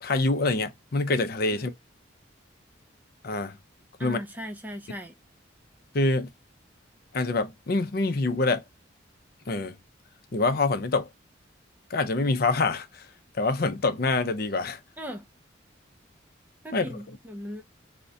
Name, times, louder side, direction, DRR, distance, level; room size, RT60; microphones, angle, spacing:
voice 1, 0.0-1.7 3.2-3.6 4.0-4.2 5.9-6.3 7.1-8.6 9.5-9.7 10.3-11.1 11.9-13.1 13.4-14.8 16.7-16.9, left 3 dB, 50° left, 0.5 m, -25 dB
voice 2, 4.0-5.1 15.0-15.2 16.6-17.6, equal, 10° right, 0.4 m, -38 dB
3.7 x 2.1 x 2.6 m
head